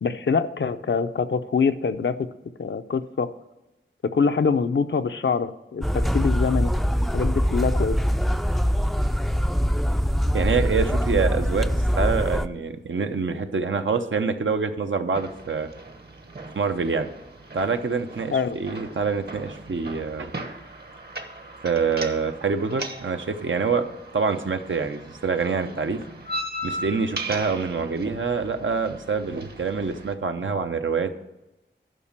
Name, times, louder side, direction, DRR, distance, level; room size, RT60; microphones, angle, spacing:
voice 1, 0.0-2.3 2.6-3.3 4.0-6.7 7.1-8.0 18.3-18.6, left 5 dB, 70° left, 9 dB, 0.6 m, -24 dB
sound 1, 5.8-12.5, equal, ahead, 0.4 m, -23 dB
voice 2, 10.3-15.7 16.5-17.1 17.5-20.4 21.6-23.9 24.1-26.0 26.6-31.2, right 5 dB, 80° right, 7 dB, 0.8 m, -26 dB
sound 2, 15.1-30.1, right 1 dB, 55° right, 1.1 m, -38 dB
11.0 x 5.1 x 7.4 m, 1.0 s
wide cardioid pair, 55°, 20 cm